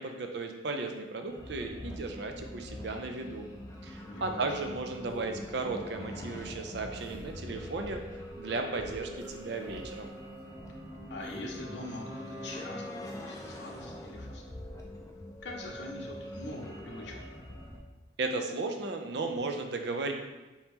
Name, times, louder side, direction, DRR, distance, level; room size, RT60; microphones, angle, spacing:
voice 1, 0.0-3.5 3.8-8.0 8.4-10.1 18.2-20.1, right 3 dB, 60° right, 5 dB, 0.5 m, -35 dB
sound 1, 1.3-17.8, equal, 15° left, 0.5 m, -43 dB
voice 2, 4.1-4.5 11.1-12.8 13.1-14.4 15.4-17.1, left 2 dB, 65° left, 1 dB, 0.7 m, -43 dB
sound 2, 4.5-4.7 5.0-5.3 6.9-7.6 9.2-9.5 9.9-10.4 11.2-12.0 13.0-13.5, equal, 10° right, 1.0 m, -51 dB
4.2 x 2.9 x 3.5 m, 1.1 s
head